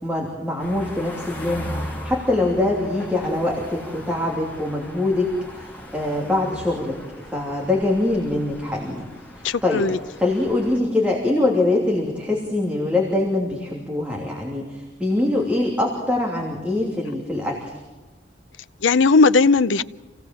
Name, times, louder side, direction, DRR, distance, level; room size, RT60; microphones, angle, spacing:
voice 1, 0.0-9.1 9.4-9.8 10.2-17.7, left 2 dB, 5° right, 2.9 m, -23 dB
sound 1, 0.6-10.8, equal, 10° left, 3.1 m, -38 dB
voice 2, 9.4-10.0 18.8-19.8, left 4 dB, 90° left, 0.6 m, -17 dB
27.5 x 17.5 x 7.6 m
head